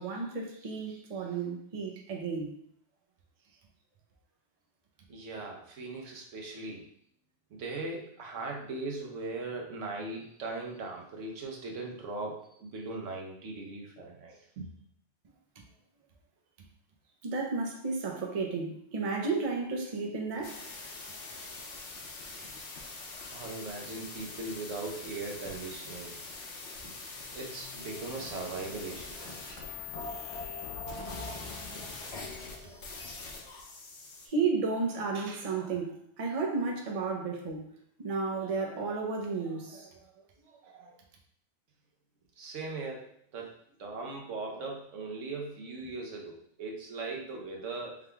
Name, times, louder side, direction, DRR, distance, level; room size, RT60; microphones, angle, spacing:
voice 1, 0.0-2.5 15.6-15.7 17.2-20.6 32.1-32.3 32.6-32.8 34.2-37.6 38.0-40.0 40.5-41.0, right 4 dB, 40° right, 1 dB, 0.6 m, -33 dB
voice 2, 5.1-6.8 7.5-14.7 23.3-26.2 27.3-29.1 42.4-43.5 43.8-48.0, right 3 dB, 85° right, 0 dB, 1.2 m, -39 dB
sound 1, 20.4-34.3, left 4 dB, 80° left, 1.1 m, -44 dB
sound 2, 26.7-33.5, left 2 dB, 45° left, 0.5 m, -45 dB
4.7 x 3.5 x 2.3 m, 0.66 s
omnidirectional pair, 1.2 m